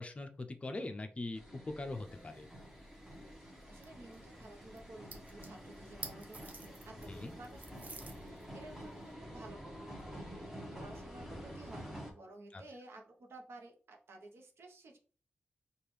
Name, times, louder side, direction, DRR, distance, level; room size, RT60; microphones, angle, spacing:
voice 1, 0.0-2.5 7.1-7.3 12.5-12.6, left 2 dB, 30° left, 7 dB, 0.5 m, -42 dB
sound 1, 1.3-12.1, equal, 10° right, 1.1 m, -49 dB
sound 2, 1.9-9.1, right 3 dB, 40° right, 0.7 m, -54 dB
voice 2, 3.4-15.0, right 2 dB, 75° right, 2 dB, 0.9 m, -54 dB
5.1 x 2.4 x 3.1 m, 0.41 s
wide cardioid pair, 125°, 4 cm